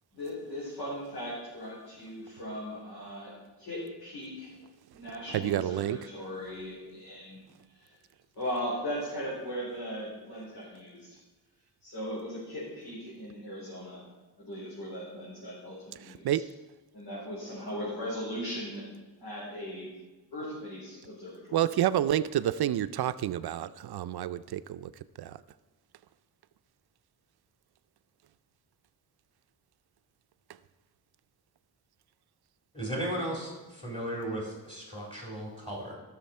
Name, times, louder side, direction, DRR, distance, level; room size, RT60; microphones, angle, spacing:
voice 1, 0.1-4.6 4.9-7.4 7.7-8.0 8.4-11.2 11.8-14.0 14.4-16.3 16.9-18.9 19.2-19.9 20.3-21.7, equal, 90° left, -8 dB, 4.0 m, -38 dB
voice 2, 5.3-6.0 16.0-16.4 21.5-24.9 25.2-25.4, right 11 dB, 75° right, 13 dB, 0.5 m, -29 dB
voice 3, 32.7-36.0, right 1 dB, 15° left, -4 dB, 3.5 m, -35 dB
17.0 x 6.4 x 4.3 m, 1.2 s
wide cardioid pair, 115°, 39 cm